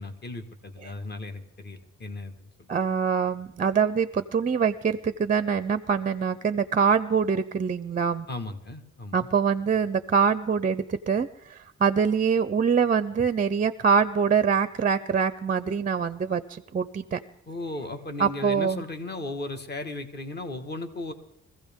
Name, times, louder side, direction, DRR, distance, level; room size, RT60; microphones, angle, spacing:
voice 1, 0.0-2.7 8.3-9.2 17.5-21.1, left 2 dB, 35° left, 6 dB, 1.5 m, -36 dB
voice 2, 2.7-8.3 9.1-17.2 18.2-18.8, right 6 dB, 30° right, 13 dB, 0.5 m, -24 dB
23.0 x 15.5 x 3.6 m, 0.78 s
wide cardioid pair, 150°, 30 cm